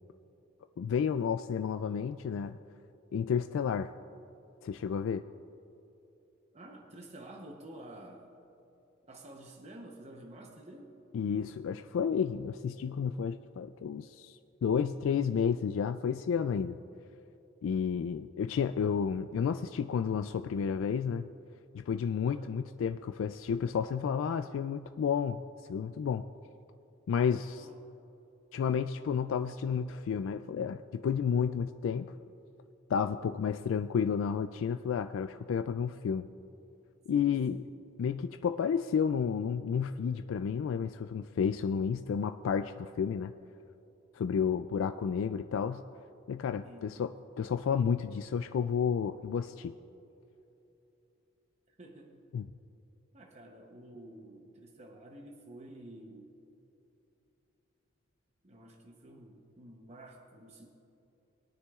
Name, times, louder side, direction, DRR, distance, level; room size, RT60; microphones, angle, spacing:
voice 1, 0.8-2.6 3.1-3.9 4.6-5.2 11.1-16.8 17.6-21.3 21.7-25.4 25.7-26.3 27.1-27.7 28.5-32.1 32.9-36.3 37.1-37.6 38.0-43.3 44.1-45.8 46.3-49.7 52.3-52.4, left 7 dB, 80° left, 9 dB, 0.3 m, -31 dB
voice 2, 6.5-8.3 9.1-10.9 22.2-22.5 27.6-27.8 37.1-37.7 46.6-46.9 51.7-52.2 53.1-56.3 58.4-60.7, right 1 dB, 35° right, 1 dB, 0.8 m, -50 dB
21.5 x 9.7 x 2.4 m, 2.9 s
head